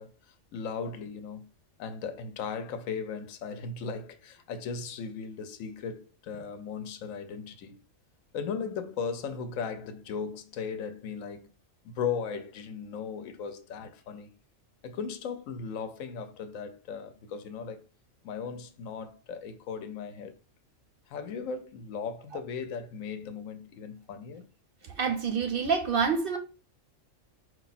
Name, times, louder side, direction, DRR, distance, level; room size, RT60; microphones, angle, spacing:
voice 1, 0.0-1.5 1.8-7.8 8.3-11.5 11.8-14.3 14.8-17.8 18.2-20.3 21.1-24.5, left 6 dB, 85° left, 1.1 m, -37 dB
voice 2, 24.8-26.4, right 5 dB, 55° right, 0.7 m, -27 dB
4.8 x 2.3 x 4.0 m
omnidirectional pair, 1.3 m